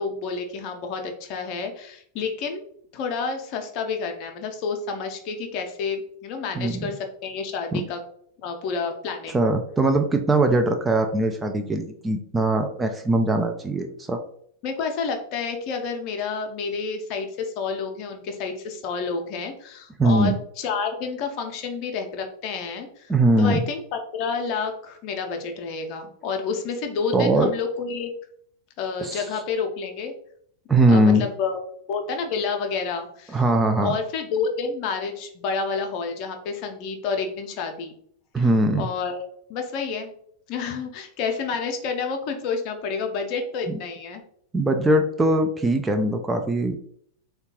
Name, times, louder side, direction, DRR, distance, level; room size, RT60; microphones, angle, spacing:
voice 1, 0.0-2.6 2.9-8.0 8.4-9.4 14.6-23.1 23.4-28.1 28.8-30.1 30.9-31.6 31.9-33.4 33.8-37.9 38.4-38.5 38.8-39.2 39.5-40.1 40.5-44.2, left 5 dB, 40° left, 5 dB, 0.5 m, -29 dB
voice 2, 6.6-6.9 7.7-7.8 9.3-14.2 20.0-20.3 23.1-23.7 27.1-27.5 29.0-29.3 30.7-31.3 33.3-34.0 38.3-38.9 44.5-46.8, right 1 dB, 15° right, 5 dB, 0.3 m, -21 dB
3.6 x 2.2 x 2.8 m, 0.64 s
figure-of-eight pair, 90°, 0 cm